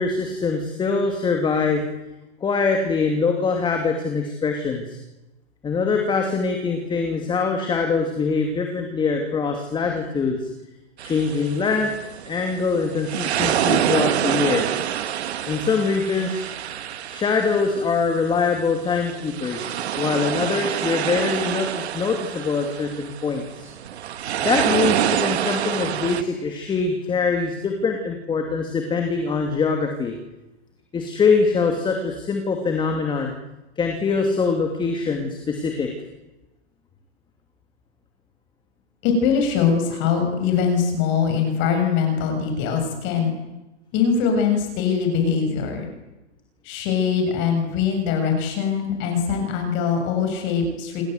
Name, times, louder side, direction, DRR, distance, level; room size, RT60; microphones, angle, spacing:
voice 1, 0.0-1.8 2.4-5.0 5.6-10.4 11.0-11.9 12.2-14.6 15.5-16.5 17.1-23.7 24.4-30.1 30.9-33.3 33.8-35.9, left 4 dB, 15° left, 3 dB, 2.7 m, -23 dB
sound 1, 11.0-26.2, right 10 dB, 70° right, 2.2 m, -27 dB
voice 2, 39.0-43.3 43.9-45.9 46.6-51.0, left 6 dB, 35° left, 4 dB, 7.4 m, -22 dB
27.5 x 26.5 x 8.1 m, 1.0 s
hypercardioid pair, 145°, 34 cm